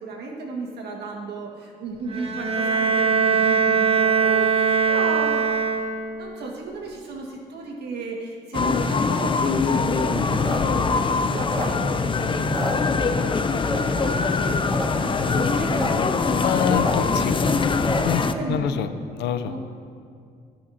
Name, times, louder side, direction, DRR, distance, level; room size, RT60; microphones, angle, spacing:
voice 1, 0.0-5.4 6.2-12.7 13.1-16.1 18.3-18.7 19.5-19.6, right 3 dB, 75° right, -1 dB, 1.8 m, -34 dB
Bowed string instrument, 2.1-6.2, right 5 dB, 35° right, 1.0 m, -21 dB
sound 1, 8.5-18.3, left 4 dB, 30° left, 0.6 m, -23 dB
sound 2, 10.4-12.1 12.4-13.3 13.6-14.1 14.5-14.9 15.1-15.2 15.4-15.9 16.3-18.3, left 1 dB, ahead, 1.8 m, -30 dB
voice 2, 16.4-17.5 18.0-18.2 18.5-19.5, left 9 dB, 85° left, 10 dB, 0.6 m, -26 dB
16.0 x 5.8 x 2.8 m, 2.3 s
supercardioid pair, 60°, 17 cm